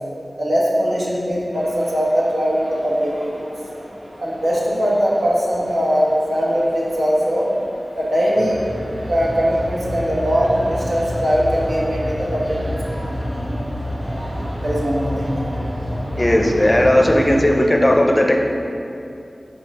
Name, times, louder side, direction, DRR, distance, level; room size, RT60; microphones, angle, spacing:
voice 1, 0.4-3.5 4.2-7.5 7.9-8.6 9.1-13.1 14.6-15.5, equal, 80° right, -6 dB, 1.3 m, -20 dB
sound 1, 1.5-17.4, equal, 30° right, 1.4 m, -29 dB
voice 2, 16.2-18.4, left 1 dB, 25° left, 2 dB, 0.5 m, -15 dB
4.9 x 4.4 x 4.8 m, 2.7 s
wide cardioid pair, 80°, 0 cm